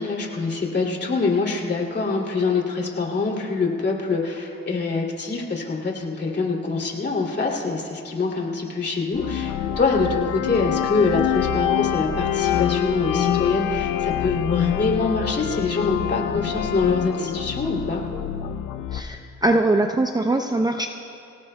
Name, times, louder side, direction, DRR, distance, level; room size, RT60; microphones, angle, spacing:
voice 1, 0.0-18.0, left 4 dB, 35° left, -1 dB, 2.6 m, -25 dB
sound 1, 9.1-19.0, left 10 dB, 80° left, 0.7 m, -25 dB
voice 2, 18.9-20.9, right 2 dB, 15° right, 4 dB, 0.6 m, -22 dB
23.0 x 18.0 x 2.2 m, 2.5 s
cardioid pair, 90°, 30 cm